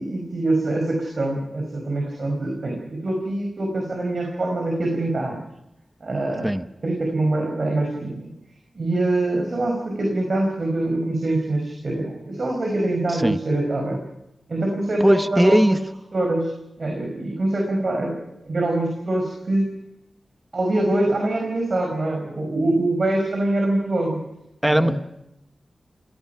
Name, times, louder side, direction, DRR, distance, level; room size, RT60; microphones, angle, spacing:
voice 1, 0.0-5.4 6.0-6.5 6.8-8.3 8.7-14.0 14.5-15.8 16.1-16.5 16.8-19.7 20.5-24.2 24.6-25.0, right 2 dB, 60° right, 2 dB, 5.3 m, -24 dB
voice 2, 15.0-15.8 24.6-24.9, equal, 10° right, 11 dB, 1.0 m, -18 dB
28.5 x 19.0 x 5.8 m, 0.86 s
wide cardioid pair, 75°, 0 cm